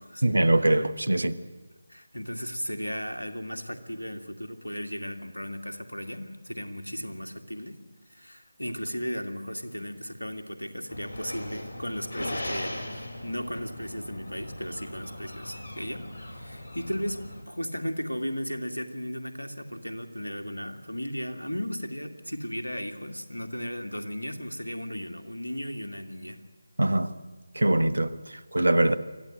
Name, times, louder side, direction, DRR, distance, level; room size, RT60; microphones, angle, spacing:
voice 1, 0.2-1.4 26.8-27.1 27.5-28.9, right 1 dB, 70° right, 1.2 m, -23 dB
voice 2, 1.9-7.8 8.1-12.9 13.2-17.2 17.5-26.4, equal, 80° left, 2.3 m, -35 dB
sound 1, 10.9-17.4, left 1 dB, 60° left, 3.1 m, -39 dB
24.5 x 15.0 x 9.2 m
figure-of-eight pair, 155°, 0 cm